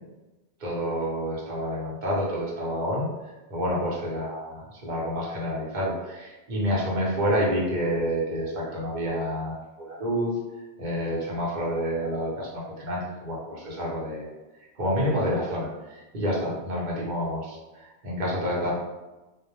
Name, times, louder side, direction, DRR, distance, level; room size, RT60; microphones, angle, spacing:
voice 1, 0.6-3.1 3.5-10.3 10.8-14.3 14.8-18.7, equal, 50° right, -5 dB, 0.8 m, -28 dB
2.1 x 2.1 x 2.9 m, 1.1 s
omnidirectional pair, 1.1 m